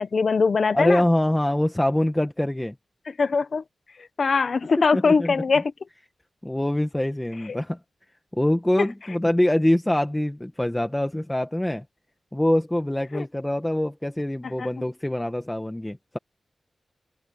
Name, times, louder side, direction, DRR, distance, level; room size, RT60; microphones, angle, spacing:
voice 1, 0.0-1.0 3.2-3.6 4.2-5.7 13.1-13.2 14.6-14.7, left 4 dB, 60° left, 1.2 m, -21 dB
voice 2, 0.7-2.7 4.8-5.6 6.4-7.8 8.3-11.8 12.3-16.2, left 1 dB, 10° left, 1.4 m, -24 dB
wide cardioid pair, 75°, 0 cm